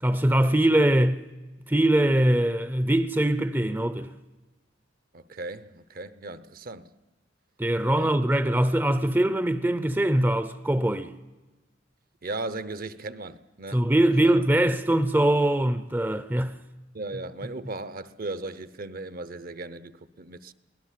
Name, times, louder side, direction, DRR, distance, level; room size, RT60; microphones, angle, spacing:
voice 1, 0.0-1.2 1.7-4.1 7.6-11.1 13.7-16.5, right 1 dB, 10° right, 0.6 m, -22 dB
voice 2, 5.1-6.9 8.0-8.1 12.2-14.3 16.9-20.5, right 2 dB, 50° right, 0.8 m, -37 dB
23.5 x 17.5 x 7.5 m
head